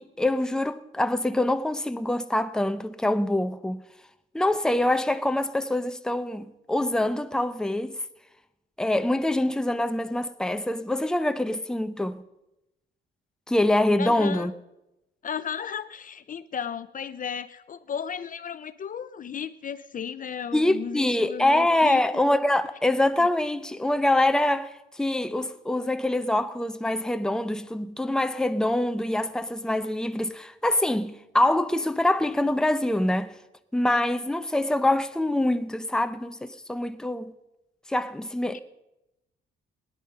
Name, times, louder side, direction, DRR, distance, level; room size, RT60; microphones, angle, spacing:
voice 1, 0.0-3.8 4.3-8.0 8.8-12.2 13.5-14.5 20.5-33.3 33.7-37.3 37.9-38.6, left 1 dB, 5° left, 0.7 m, -25 dB
voice 2, 14.0-14.5 15.2-22.0 38.5-38.6, left 7 dB, 40° left, 0.5 m, -34 dB
17.5 x 10.5 x 5.5 m
cardioid pair, 90°, 20 cm